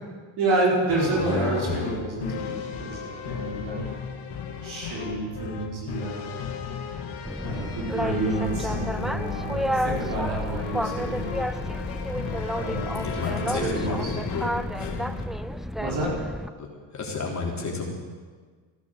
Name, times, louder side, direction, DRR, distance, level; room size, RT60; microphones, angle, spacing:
voice 1, 0.4-2.5 2.8-3.9 4.6-6.3 7.3-11.3 12.5-14.1 15.7-16.1, right 2 dB, 60° right, -4 dB, 5.4 m, -29 dB
sound 1, 0.9-15.3, left 7 dB, 65° left, 2.3 m, -36 dB
voice 2, 1.0-1.8 13.0-14.5 14.8-14.9 16.6-16.7 16.9-17.9, left 3 dB, 40° left, -1 dB, 3.5 m, -31 dB
Boat Water vehicle, 7.2-16.5, equal, ahead, 0.5 m, -31 dB
sound 2, 8.4-15.3, left 7 dB, 90° left, 1.8 m, -39 dB
16.0 x 11.0 x 7.9 m, 1.5 s
supercardioid pair, 70°, 44 cm